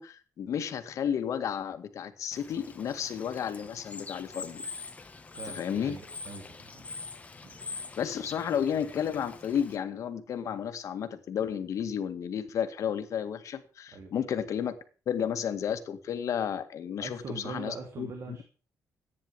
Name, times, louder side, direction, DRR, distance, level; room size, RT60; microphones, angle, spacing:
voice 1, 0.0-4.6 5.6-6.0 7.7-14.8 15.1-17.2 17.4-18.4, left 8 dB, 65° left, 9 dB, 2.0 m, -32 dB
Bird / Water, 2.3-9.8, left 4 dB, 25° left, 1.6 m, -44 dB
voice 2, 5.4-6.8 7.4-7.6 13.9-14.1 17.0-18.4, right 4 dB, 55° right, 4 dB, 3.0 m, -42 dB
14.5 x 9.9 x 7.0 m, 0.39 s
cardioid pair, 125°, 6 cm